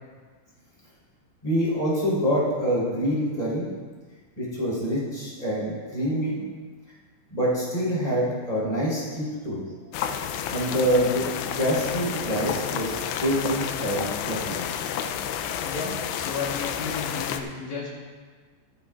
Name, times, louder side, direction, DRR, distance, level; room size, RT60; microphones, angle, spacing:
voice 1, 1.4-3.7 4.4-6.4 7.3-9.6 10.5-14.6, equal, 10° left, -7 dB, 2.7 m, -26 dB
sound 1, 9.9-17.4, left 9 dB, 85° left, 2.4 m, -30 dB
voice 2, 15.6-18.0, left 4 dB, 70° left, -4 dB, 1.7 m, -33 dB
14.0 x 13.5 x 2.5 m, 1.5 s
omnidirectional pair, 5.5 m